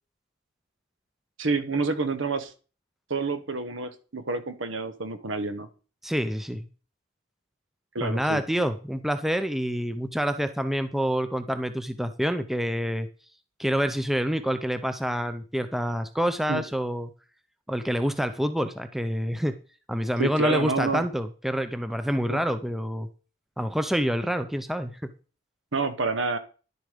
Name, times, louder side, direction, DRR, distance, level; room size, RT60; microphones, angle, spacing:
voice 1, 1.4-2.5 3.1-5.7 7.9-8.4 16.5-16.6 20.2-21.0 22.3-22.4 25.7-26.4, right 3 dB, 75° right, 11 dB, 1.2 m, -28 dB
voice 2, 6.0-6.7 8.0-13.1 13.6-17.1 17.7-19.6 19.9-23.1 23.6-25.1, equal, ahead, 10 dB, 0.5 m, -27 dB
11.0 x 6.8 x 5.1 m, 0.37 s
head